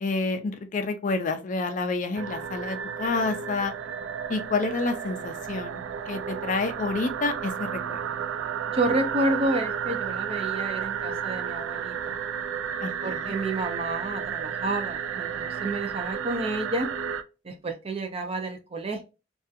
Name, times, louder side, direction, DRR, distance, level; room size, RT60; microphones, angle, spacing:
voice 1, 0.0-3.7 4.3-5.8 6.1-8.0 12.8-13.3, left 3 dB, 45° left, 0.4 m, -29 dB
sound 1, 2.1-17.2, right 8 dB, 90° right, 0.3 m, -32 dB
voice 2, 8.7-12.2 13.0-16.9 17.4-19.0, right 2 dB, 30° right, 0.5 m, -30 dB
2.6 x 2.3 x 2.4 m
head